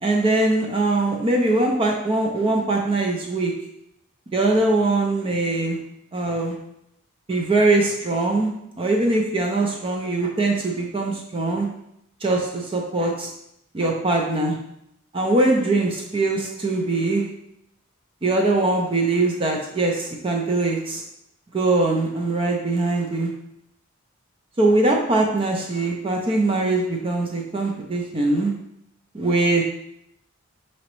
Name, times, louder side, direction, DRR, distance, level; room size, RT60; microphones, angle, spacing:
voice 1, 0.0-3.5 4.3-5.8 6.1-6.6 7.3-8.5 8.8-11.7 12.2-13.3 13.7-14.6 15.1-17.2 18.2-21.0 21.5-23.3 24.6-28.5 29.1-29.6, right 2 dB, 25° right, 1 dB, 0.4 m, -22 dB
4.9 x 3.1 x 3.0 m, 0.78 s
head